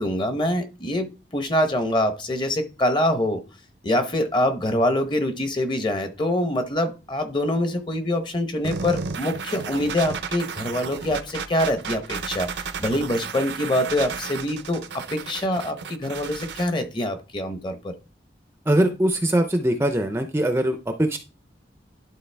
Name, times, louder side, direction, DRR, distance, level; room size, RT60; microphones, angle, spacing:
voice 1, 0.0-3.4 3.8-17.9, left 1 dB, 25° left, 7 dB, 0.9 m, -25 dB
sound 1, 8.6-16.6, right 5 dB, 75° right, 0.6 m, -33 dB
voice 2, 18.7-21.2, right 1 dB, 15° right, 6 dB, 0.5 m, -22 dB
11.5 x 3.8 x 3.4 m, 0.31 s
head